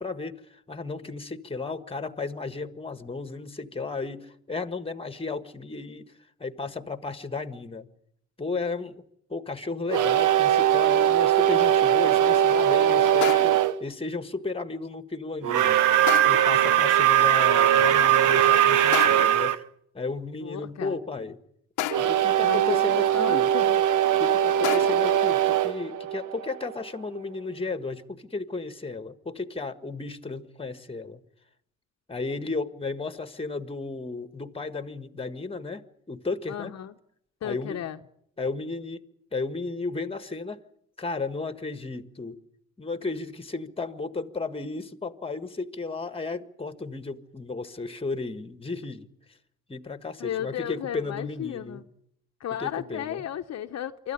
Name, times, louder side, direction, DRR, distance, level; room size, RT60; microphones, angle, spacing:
voice 1, 0.0-6.1 6.4-7.9 8.4-9.0 9.3-15.8 16.2-19.6 19.9-21.4 22.0-23.5 24.2-31.2 32.1-36.7 37.4-37.8 38.4-39.0 39.3-40.6 41.0-42.4 42.8-49.1 49.7-51.8 52.6-53.3, left 3 dB, 20° left, 1.6 m, -34 dB
sound 1, 9.9-13.8 15.4-19.6 21.9-26.8, right 11 dB, 85° right, 0.9 m, -21 dB
sound 2, 13.2-13.7 16.1-16.6 18.9-19.5 21.8-22.4 24.6-25.2, left 14 dB, 90° left, 0.9 m, -32 dB
voice 2, 20.4-21.0 22.4-23.8 36.5-36.9 37.4-38.0 50.2-51.8 52.4-54.1, left 10 dB, 60° left, 1.0 m, -34 dB
25.0 x 13.5 x 9.8 m
cardioid pair, 90°, 30 cm